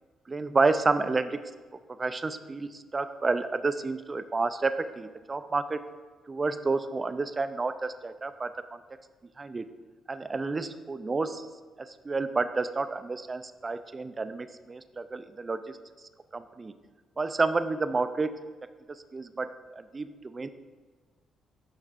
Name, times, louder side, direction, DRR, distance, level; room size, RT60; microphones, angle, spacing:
voice 1, 0.3-1.4 2.0-5.8 6.3-8.5 9.4-9.7 10.1-11.5 11.8-15.6 16.3-16.7 17.2-18.3 18.9-20.5, right 3 dB, 30° right, 11 dB, 0.4 m, -30 dB
12.0 x 4.4 x 2.5 m, 1.4 s
cardioid pair, 90°, 0 cm